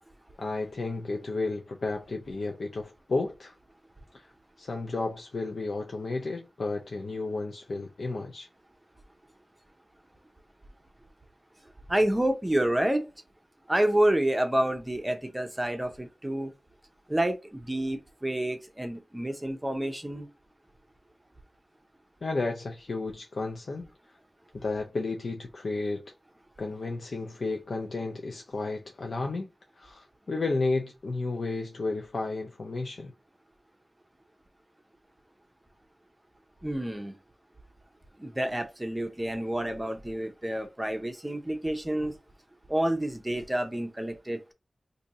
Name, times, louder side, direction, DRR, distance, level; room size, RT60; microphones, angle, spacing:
voice 1, 0.4-3.5 4.1-4.3 4.6-8.5 22.2-23.9 24.5-26.1 26.6-29.5 29.8-33.1, left 3 dB, 75° left, 0.5 m, -32 dB
voice 2, 11.9-13.0 13.7-16.5 17.1-20.3 36.6-37.2 38.2-42.1 42.7-44.5, right 1 dB, 15° right, 0.7 m, -28 dB
2.6 x 2.6 x 4.1 m
wide cardioid pair, 75°, 0 cm